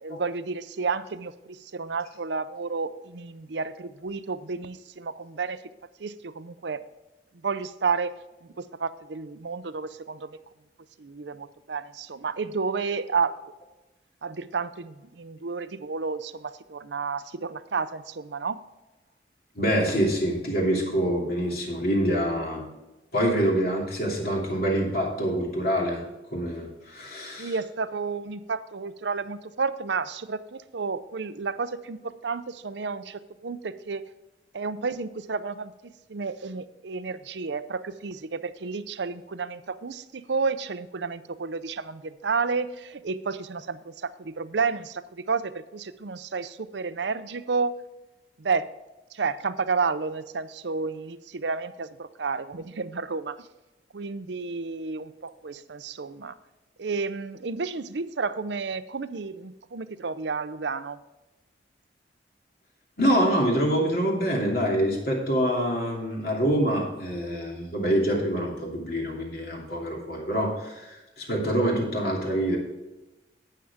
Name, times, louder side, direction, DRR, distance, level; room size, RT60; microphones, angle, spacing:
voice 1, 0.0-5.6 6.0-6.8 7.4-8.1 8.4-10.4 11.0-13.3 14.2-18.6 27.4-34.0 34.5-47.7 48.4-48.7 49.1-53.5 53.9-56.3 56.8-61.0, right 4 dB, 75° right, 13 dB, 0.6 m, -31 dB
voice 2, 19.5-22.6 23.1-26.0 26.3-27.5 63.0-72.6, equal, 55° left, -2 dB, 2.9 m, -25 dB
12.0 x 9.1 x 3.6 m, 1.0 s
head